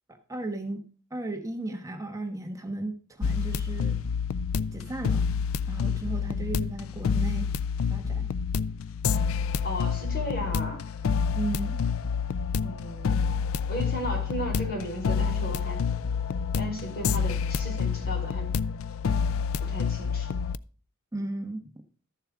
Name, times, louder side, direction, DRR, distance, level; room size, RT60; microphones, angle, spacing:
voice 1, 0.1-0.8 1.1-4.0 4.7-5.2 5.7-7.5 7.9-8.3 11.4-11.8 21.1-21.6, right 2 dB, 15° right, 5 dB, 1.2 m, -35 dB
sound 1, 3.2-20.6, left 6 dB, 80° left, 0.4 m, -28 dB
voice 2, 9.6-10.8 12.6-13.2 13.7-15.8 16.5-18.5 19.6-20.3, left 1 dB, 50° left, -1 dB, 4.7 m, -35 dB
13.5 x 7.3 x 3.6 m, 0.40 s
head